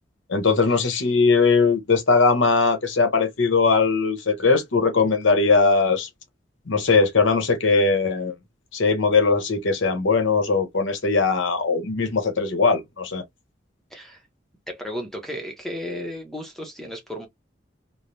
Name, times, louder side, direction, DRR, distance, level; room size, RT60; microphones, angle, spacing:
voice 1, 0.3-6.1 6.7-8.3 8.7-13.2, left 4 dB, 80° left, 0.9 m, -20 dB
voice 2, 13.9-14.2 14.7-17.3, left 1 dB, ahead, 0.7 m, -34 dB
3.1 x 2.0 x 2.6 m
head